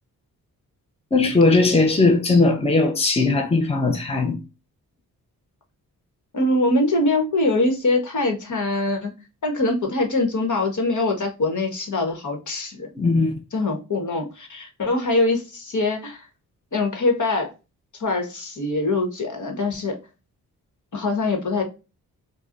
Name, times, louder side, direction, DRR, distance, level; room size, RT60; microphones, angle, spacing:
voice 1, 1.1-4.4 12.9-13.4, left 3 dB, 15° left, 0.9 m, -18 dB
voice 2, 6.3-9.1 9.4-12.9 13.5-16.2 16.7-17.5 18.0-20.0 20.9-21.6, left 2 dB, 50° left, 1.4 m, -23 dB
4.7 x 2.4 x 2.5 m
supercardioid pair, 45°, 38 cm